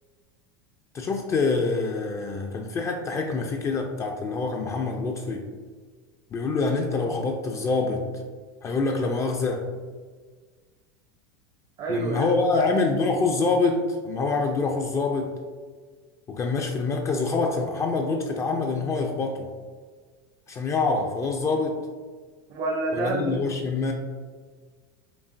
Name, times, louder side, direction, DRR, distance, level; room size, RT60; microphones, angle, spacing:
voice 1, 0.9-5.5 6.3-8.1 8.6-9.7 11.9-15.3 16.3-19.5 20.5-21.8 22.9-23.9, left 3 dB, 25° left, 3 dB, 0.3 m, -26 dB
voice 2, 11.8-12.7 22.5-23.4, right 2 dB, 45° right, 2 dB, 0.5 m, -28 dB
5.2 x 2.4 x 2.5 m, 1.5 s
supercardioid pair, 125°, 12 cm